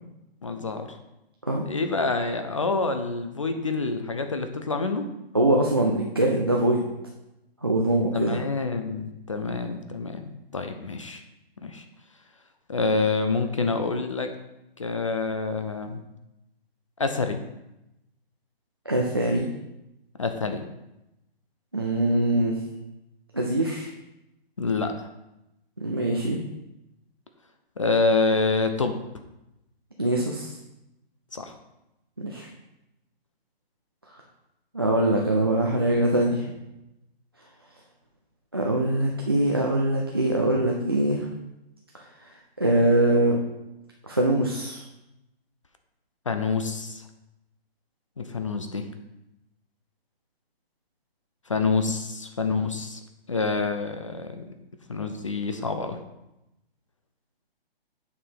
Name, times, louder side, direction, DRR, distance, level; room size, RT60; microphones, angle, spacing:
voice 1, 0.4-1.0 1.7-5.1 8.1-11.2 11.6-11.8 12.7-14.3 14.8-16.0 17.0-17.4 20.2-20.6 24.6-24.9 27.8-29.0 31.3-31.6 46.3-47.0 48.2-48.9 51.5-53.0 53.3-54.4 54.9-56.0, left 3 dB, 30° left, 7 dB, 0.5 m, -27 dB
voice 2, 5.3-6.9 7.6-8.4 18.9-19.5 21.7-22.6 23.3-23.9 25.8-26.4 30.0-30.6 32.2-32.5 34.7-36.5 38.5-41.3 42.6-43.4 44.0-44.8, right 1 dB, 25° right, -1 dB, 0.4 m, -23 dB
8.2 x 4.8 x 5.6 m, 0.93 s
hypercardioid pair, 170°, 31 cm